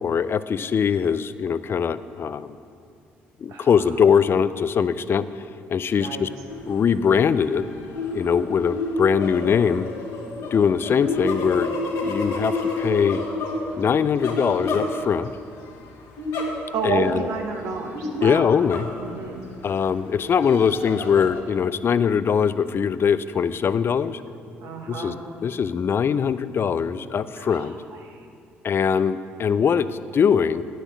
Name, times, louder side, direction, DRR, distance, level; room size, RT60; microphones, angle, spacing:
voice 1, 0.0-2.6 3.4-5.3 5.7-6.3 6.6-7.6 8.1-9.9 10.5-11.7 12.0-13.2 13.8-15.3 16.8-17.3 18.2-18.9 19.6-24.2 24.9-25.1 25.4-27.8 28.6-30.6, left 7 dB, 45° left, 15 dB, 0.4 m, -22 dB
sound 1, 6.5-6.8 7.1-15.4 16.2-16.9 17.2-17.3 17.9-19.4 19.9-21.4, left 2 dB, 65° left, 1.8 m, -30 dB
voice 2, 16.7-18.5 19.0-19.4 24.6-25.1 27.4-27.7 28.0-28.2, right 5 dB, 70° right, 1 dB, 1.6 m, -29 dB
9.7 x 6.2 x 8.1 m, 2.3 s
hypercardioid pair, 55°, 6 cm